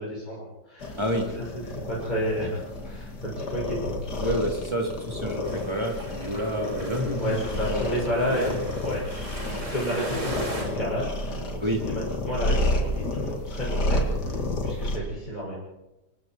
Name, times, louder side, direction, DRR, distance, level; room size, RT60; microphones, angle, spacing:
voice 1, 0.0-4.3 7.2-8.5 8.8-9.0 9.4-11.6 11.9-15.6, equal, 25° left, -6 dB, 6.8 m, -31 dB
sound 1, 0.8-15.0, left 1 dB, 70° left, 3.1 m, -31 dB
voice 2, 4.2-8.0 8.3-8.6 11.6-11.8, equal, 15° right, 0 dB, 4.0 m, -29 dB
sound 2, 5.4-10.6, right 1 dB, 45° right, 6.6 m, -38 dB
26.5 x 23.5 x 4.8 m, 0.98 s
omnidirectional pair, 1.8 m